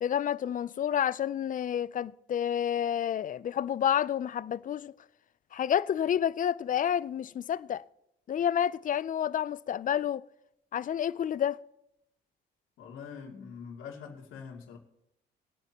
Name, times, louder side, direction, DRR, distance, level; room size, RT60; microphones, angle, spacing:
voice 1, 0.0-4.9 5.5-7.8 8.3-10.2 10.7-11.6, left 9 dB, 40° left, 0.4 m, -29 dB
voice 2, 12.8-14.8, left 6 dB, 90° left, 2.5 m, -44 dB
23.0 x 8.9 x 2.9 m
cardioid pair, 90°, 20 cm